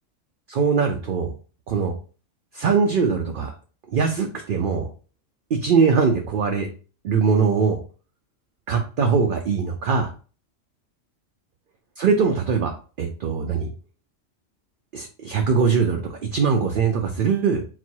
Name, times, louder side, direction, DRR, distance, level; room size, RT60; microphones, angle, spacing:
voice 1, 0.5-1.3 1.7-1.9 2.5-3.5 3.9-4.9 5.5-6.7 7.0-7.8 8.7-10.1 12.0-12.7 13.0-13.7 14.9-17.6, right 5 dB, 60° right, 3 dB, 0.6 m, -21 dB
4.1 x 2.1 x 4.4 m, 0.38 s
omnidirectional pair, 1.3 m